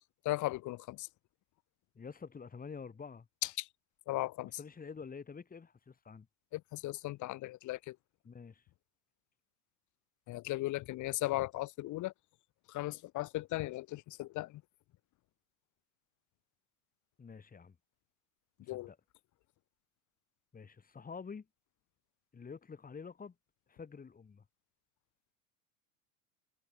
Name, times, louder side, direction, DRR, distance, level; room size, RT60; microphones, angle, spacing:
voice 1, 0.3-1.1 3.6-3.7 4.1-4.5 6.5-8.0 10.3-12.1 12.7-14.6 18.7-18.9, left 17 dB, 40° left, 1.9 m, -37 dB
voice 2, 1.9-3.3 4.4-6.3 8.2-8.6 17.2-17.7 18.6-19.0 20.5-21.5 22.3-23.3 23.7-24.4, left 5 dB, 20° left, 6.8 m, -48 dB
hypercardioid pair, 100°, 43 cm